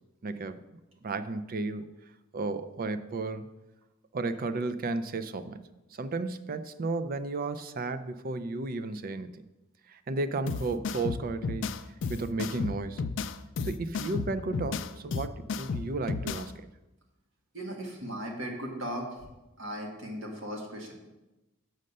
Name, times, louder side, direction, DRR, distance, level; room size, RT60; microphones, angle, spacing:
voice 1, 0.2-0.6 1.0-1.9 2.3-3.5 4.1-5.6 5.9-9.4 9.9-11.7 12.1-13.0 13.6-16.7, right 3 dB, 40° right, 12 dB, 0.4 m, -33 dB
sound 1, 10.5-16.5, left 4 dB, 60° left, 0.4 m, -33 dB
voice 2, 17.5-19.3 19.6-20.9, equal, 65° right, 0 dB, 1.8 m, -37 dB
6.5 x 6.4 x 5.4 m, 1.0 s
head